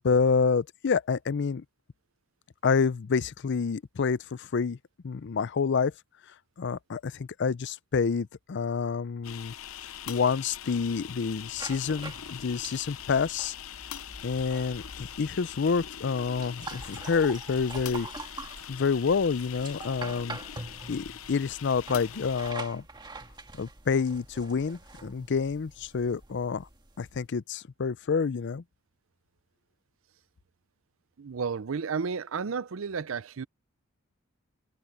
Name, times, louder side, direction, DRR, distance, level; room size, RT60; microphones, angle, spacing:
voice 1, 0.0-1.6 2.6-4.8 5.0-5.9 6.6-9.5 10.1-13.5 14.2-18.1 18.7-20.4 20.9-22.8 23.6-26.7 27.0-28.6, left 5 dB, 60° left, 0.5 m, -28 dB
sound 1, 9.2-22.5, left 9 dB, 90° left, 0.7 m, -42 dB
sound 2, 11.6-27.3, right 3 dB, 20° right, 1.7 m, -45 dB
voice 2, 31.2-33.5, right 5 dB, 70° right, 0.5 m, -32 dB
head